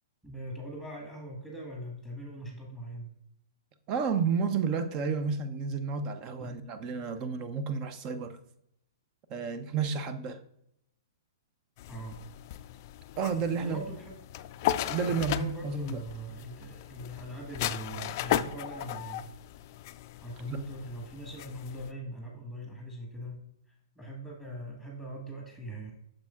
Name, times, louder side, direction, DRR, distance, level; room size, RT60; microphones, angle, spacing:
voice 1, 0.2-3.1 6.4-6.6 11.9-12.2 13.6-14.2 15.1-19.3 20.2-23.4 23.9-25.9, right 1 dB, 10° right, -1 dB, 1.7 m, -41 dB
voice 2, 3.9-8.4 9.3-10.4 13.2-13.8 14.9-16.0 20.5-20.6, right 5 dB, 35° right, 12 dB, 0.7 m, -31 dB
sound 1, 11.8-21.9, left 13 dB, 45° left, 0.4 m, -36 dB
8.8 x 6.3 x 2.4 m, 0.76 s
hypercardioid pair, 125°, 2 cm